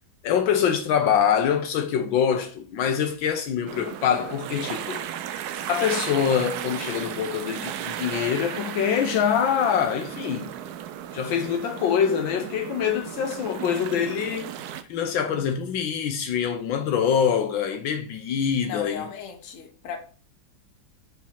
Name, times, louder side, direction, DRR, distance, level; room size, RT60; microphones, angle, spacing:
voice 1, 0.2-5.0 5.7-10.5 11.1-14.5 14.9-19.1, left 8 dB, 80° left, 1.5 m, -24 dB
sound 1, 3.7-14.8, right 10 dB, 75° right, 0.9 m, -35 dB
voice 2, 18.6-20.0, left 7 dB, 45° left, 1.3 m, -36 dB
4.7 x 4.1 x 5.5 m
omnidirectional pair, 2.2 m